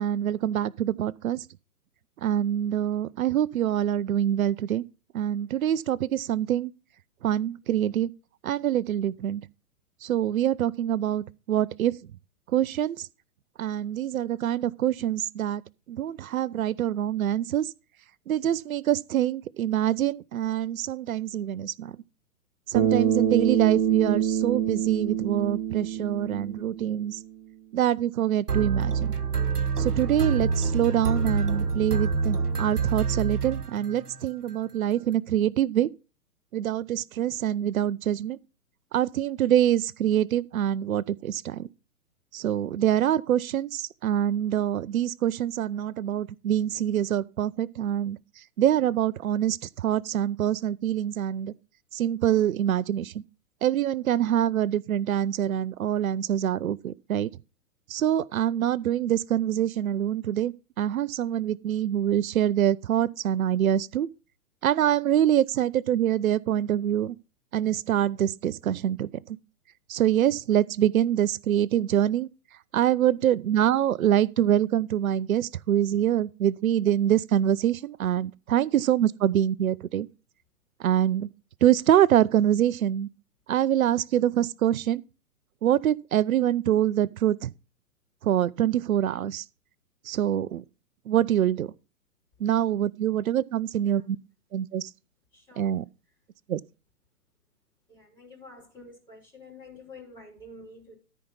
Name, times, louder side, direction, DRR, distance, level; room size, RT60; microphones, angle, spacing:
voice 1, 0.0-1.4 2.2-4.8 5.1-6.7 7.2-8.1 8.4-9.4 10.0-11.9 12.5-13.1 13.6-15.6 15.9-17.7 18.3-21.9 22.7-27.2 27.7-29.1 29.8-35.9 36.5-38.4 38.9-41.7 42.3-48.2 48.6-51.5 51.9-53.2 53.6-57.3 57.9-64.1 64.6-67.1 67.5-69.1 69.9-72.3 72.7-80.1 80.8-81.3 81.6-83.1 83.5-85.0 85.6-87.5 88.2-89.4 90.1-90.6 91.1-91.7 92.4-94.2 94.5-94.9 95.6-95.8 96.5-96.6, right 11 dB, 65° right, 0.6 m, -25 dB
Bass guitar, 22.7-27.1, right 9 dB, 30° right, 1.4 m, -26 dB
sound 1, 28.5-34.2, right 5 dB, 85° right, 1.1 m, -26 dB
voice 2, 95.3-95.8 97.9-101.0, left 2 dB, 10° left, 4.3 m, -48 dB
13.5 x 4.7 x 5.4 m
figure-of-eight pair, 120°, 45 cm